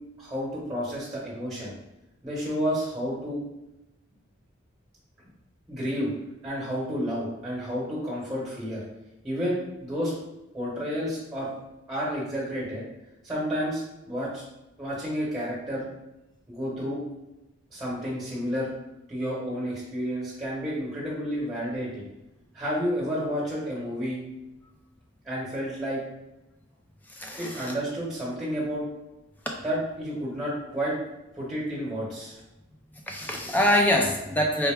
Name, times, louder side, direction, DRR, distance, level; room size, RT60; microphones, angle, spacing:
voice 1, 0.2-1.7 2.2-3.4 5.7-6.1 6.4-8.8 9.2-10.1 10.5-11.5 11.9-12.8 13.2-14.4 14.8-15.9 16.5-17.0 17.7-18.7 19.1-22.0 22.5-24.2 25.2-26.0 27.4-28.8 29.6-31.0 31.3-32.4, equal, 15° right, -6 dB, 1.2 m, -30 dB
voice 2, 27.1-27.7 33.1-34.7, left 1 dB, 10° left, 0 dB, 0.4 m, -24 dB
4.5 x 2.1 x 3.4 m, 0.94 s
head